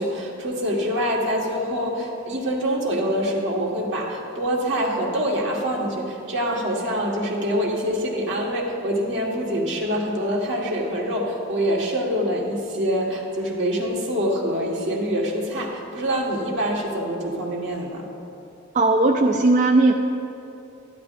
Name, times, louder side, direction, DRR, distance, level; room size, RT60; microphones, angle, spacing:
voice 1, 0.0-18.0, equal, 65° right, -2 dB, 1.6 m, -25 dB
voice 2, 18.7-19.9, right 2 dB, 35° right, 1 dB, 0.4 m, -17 dB
13.5 x 11.0 x 2.6 m, 2.9 s
head